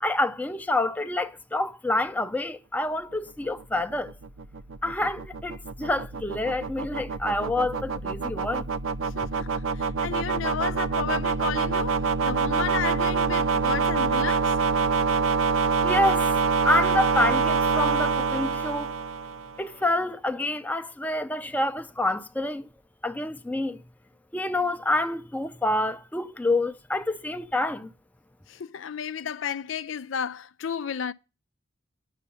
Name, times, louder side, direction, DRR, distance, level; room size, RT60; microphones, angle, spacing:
voice 1, 0.0-4.1 4.8-8.7 15.8-18.9 19.6-22.7 23.0-23.8 24.3-27.9, left 2 dB, 10° left, 0.6 m, -27 dB
sound 1, 3.4-19.6, right 4 dB, 85° right, 0.6 m, -26 dB
voice 2, 9.0-14.5 28.5-31.1, left 7 dB, 70° left, 0.5 m, -33 dB
9.6 x 6.7 x 6.9 m
head